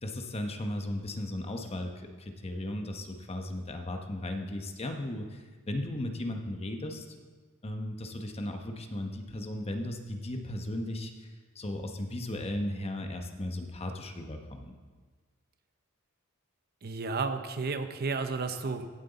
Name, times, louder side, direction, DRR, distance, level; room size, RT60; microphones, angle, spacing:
voice 1, 0.0-7.2 7.6-11.3 11.5-14.7, left 1 dB, 30° left, 4 dB, 0.9 m, -36 dB
voice 2, 16.8-18.9, right 4 dB, 45° right, 9 dB, 0.6 m, -32 dB
15.5 x 7.6 x 4.0 m, 1.4 s
head